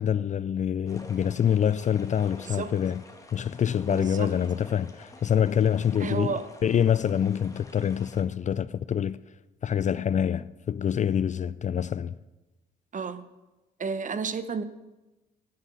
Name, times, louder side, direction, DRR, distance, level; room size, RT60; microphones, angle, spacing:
voice 1, 0.0-3.0 3.3-6.3 6.6-9.2 9.6-12.2, left 8 dB, 35° left, 0.4 m, -26 dB
sound 1, 0.9-8.2, left 2 dB, 15° left, 1.8 m, -49 dB
voice 2, 3.9-4.3 6.0-6.5 12.9-13.2 13.8-14.6, right 5 dB, 40° right, 0.9 m, -31 dB
11.0 x 7.8 x 6.9 m
supercardioid pair, 75°, 21 cm